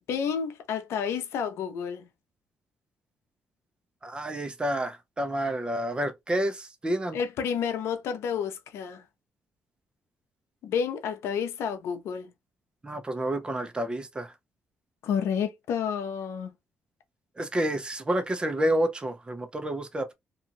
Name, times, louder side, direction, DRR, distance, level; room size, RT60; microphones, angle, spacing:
voice 1, 0.1-2.1 7.1-9.0 10.6-12.3 15.0-16.5, left 7 dB, 80° left, 0.7 m, -30 dB
voice 2, 4.0-7.2 12.8-14.3 17.4-20.1, right 1 dB, 20° right, 0.8 m, -29 dB
2.7 x 2.4 x 2.8 m
cardioid pair, 75°, 4 cm